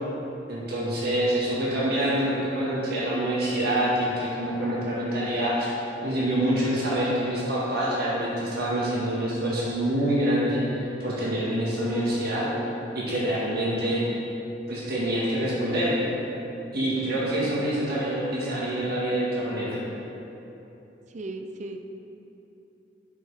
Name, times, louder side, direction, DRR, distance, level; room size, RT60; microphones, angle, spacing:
voice 1, 0.5-12.5 13.0-14.0 14.7-16.0 16.7-19.8, right 1 dB, 60° right, -7 dB, 1.8 m, -26 dB
voice 2, 17.3-17.7 21.1-21.8, right 2 dB, 40° right, 6 dB, 0.5 m, -37 dB
10.5 x 5.4 x 3.5 m, 3.0 s
head